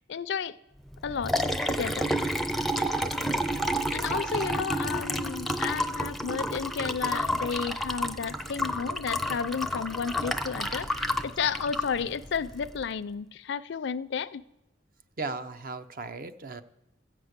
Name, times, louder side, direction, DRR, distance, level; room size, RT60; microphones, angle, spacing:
voice 1, 0.1-0.5 1.0-1.3 1.8-2.1 3.9-14.4, left 6 dB, 65° left, 0.4 m, -32 dB
Liquid, 0.9-12.8, equal, ahead, 0.5 m, -30 dB
voice 2, 3.8-4.5 11.5-11.6 15.2-16.6, right 3 dB, 50° right, 0.7 m, -38 dB
14.5 x 6.1 x 8.0 m
head